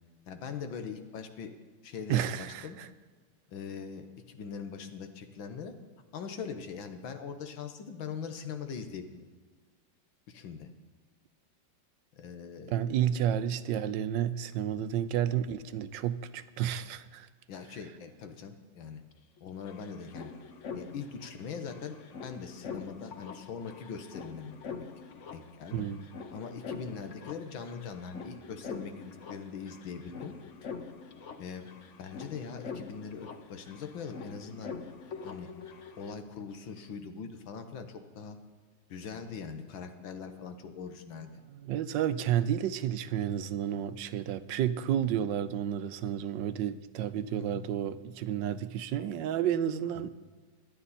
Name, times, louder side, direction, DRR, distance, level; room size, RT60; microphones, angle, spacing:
voice 1, 0.3-1.5 1.8-2.8 3.5-5.7 6.1-9.2 10.3-10.7 12.1-12.8 14.8-15.0 17.5-19.0 19.4-20.3 20.8-24.6 25.3-25.9 26.3-30.3 31.4-31.7 32.0-34.7 35.2-35.5 36.0-38.4 38.9-41.4 47.4-47.6 50.0-50.1, left 6 dB, 80° left, 1.9 m, -41 dB
voice 2, 2.1-2.9 12.7-17.3 25.7-26.0 41.6-50.1, right 10 dB, 75° right, 1.3 m, -31 dB
sound 1, 19.1-19.2 19.4-36.1, left 5 dB, 50° left, 1.0 m, -45 dB
24.5 x 9.8 x 4.2 m
omnidirectional pair, 2.1 m